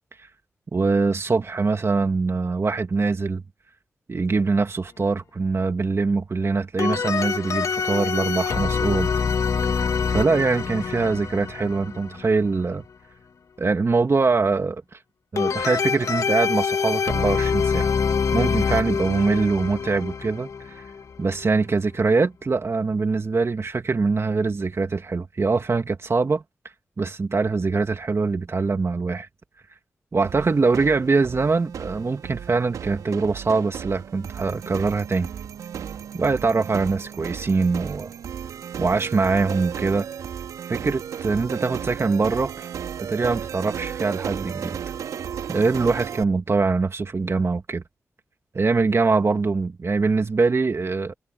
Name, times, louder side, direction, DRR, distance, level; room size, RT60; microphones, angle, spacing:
voice 1, 0.7-3.4 4.1-9.1 10.1-12.8 13.6-15.0 15.3-17.9 18.3-20.9 21.2-26.4 27.0-29.3 30.1-35.3 36.1-38.1 38.8-40.1 40.7-42.7 43.0-44.8 45.5-47.8 48.5-51.1, right 4 dB, 50° right, 2.5 m, -23 dB
sound 1, 6.8-12.4 15.4-21.4, left 6 dB, 70° left, 2.4 m, -25 dB
sound 2, 30.2-46.2, right 8 dB, 85° right, 5.0 m, -34 dB
supercardioid pair, 40°, 6 cm